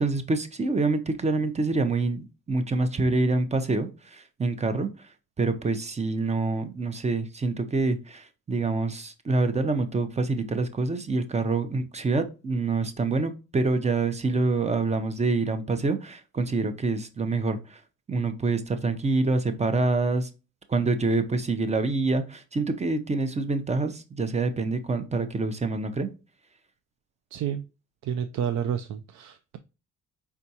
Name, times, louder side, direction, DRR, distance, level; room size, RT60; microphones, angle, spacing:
voice 1, 0.0-4.9 5.4-17.8 18.1-20.3 20.7-26.1, right 3 dB, 20° right, 9 dB, 0.6 m, -26 dB
voice 2, 27.3-27.6 28.0-29.6, right 9 dB, 65° right, 8 dB, 0.5 m, -30 dB
4.3 x 3.5 x 2.7 m, 0.31 s
cardioid pair, 90°, 30 cm